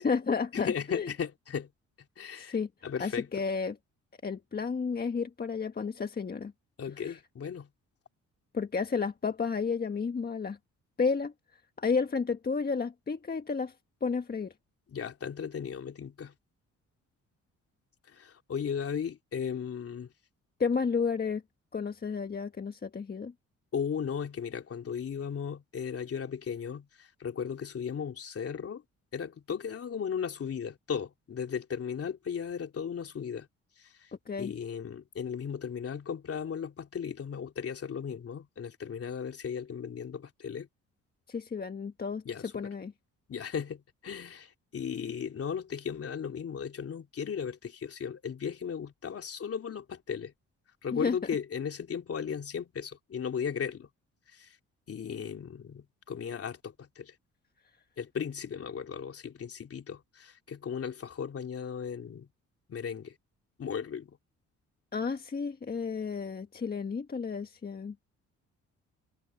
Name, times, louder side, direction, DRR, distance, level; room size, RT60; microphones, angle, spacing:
voice 1, 0.0-1.1 2.3-2.7 3.0-3.7 4.2-6.5 7.0-7.2 8.5-10.6 11.0-11.3 11.8-13.7 14.0-14.5 20.6-21.4 21.7-23.3 34.3-34.5 41.3-42.2 42.5-42.9 50.9-51.2 64.9-67.9, left 5 dB, 30° left, 1.4 m, -31 dB
voice 2, 0.5-1.7 2.2-2.6 2.8-3.4 6.8-7.7 14.9-16.3 18.1-20.1 23.7-28.8 29.1-33.5 33.8-34.1 34.4-40.7 42.2-42.7 43.3-50.3 50.8-53.9 54.3-54.5 54.9-57.1 58.0-62.3 62.7-63.1 63.6-64.2, left 7 dB, 50° left, 3.4 m, -36 dB
cardioid pair, 90°, 30 cm